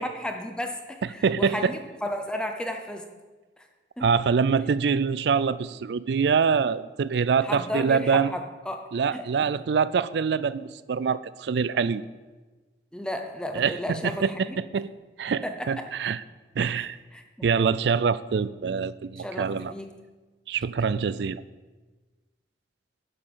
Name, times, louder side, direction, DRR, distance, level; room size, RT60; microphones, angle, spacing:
voice 1, 0.0-3.0 4.0-4.1 7.4-8.8 9.1-9.3 12.9-14.6 15.4-15.7 16.7-16.9 17.1-17.5 19.2-19.9, left 1 dB, 5° left, 5 dB, 0.7 m, -33 dB
voice 2, 1.2-1.7 4.0-8.3 8.9-12.0 13.5-14.9 15.2-16.2 16.6-17.0 17.4-19.7 20.5-21.4, right 6 dB, 65° right, 17 dB, 0.4 m, -25 dB
11.0 x 5.7 x 6.8 m, 1.3 s
head